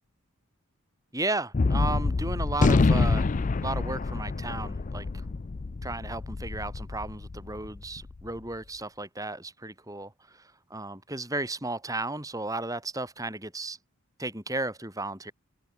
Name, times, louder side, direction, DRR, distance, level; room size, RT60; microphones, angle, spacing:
voice 1, 1.1-3.3 3.6-5.1 5.8-10.1 10.7-13.8 14.2-15.3, right 2 dB, 15° right, 6.6 m, -34 dB
Gunshot gunfire, 1.5-8.1, left 3 dB, 35° left, 0.4 m, -26 dB
head